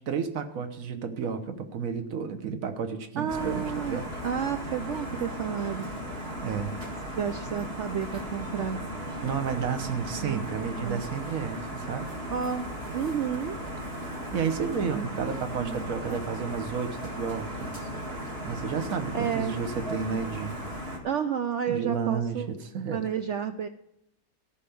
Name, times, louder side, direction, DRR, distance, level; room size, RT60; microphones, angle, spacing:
voice 1, 0.0-4.1 6.4-6.8 9.2-12.1 14.0-17.8 18.4-20.6 21.7-23.0, right 6 dB, 55° right, 8 dB, 1.3 m, -32 dB
voice 2, 3.2-5.9 7.1-8.9 10.2-11.0 12.3-12.7 12.9-13.6 15.5-16.3 19.1-19.5 21.0-22.5 22.9-23.7, right 8 dB, 80° right, 9 dB, 0.6 m, -31 dB
sound 1, 3.3-21.0, equal, 35° right, 2.1 m, -36 dB
14.0 x 5.8 x 6.9 m, 0.80 s
omnidirectional pair, 1.8 m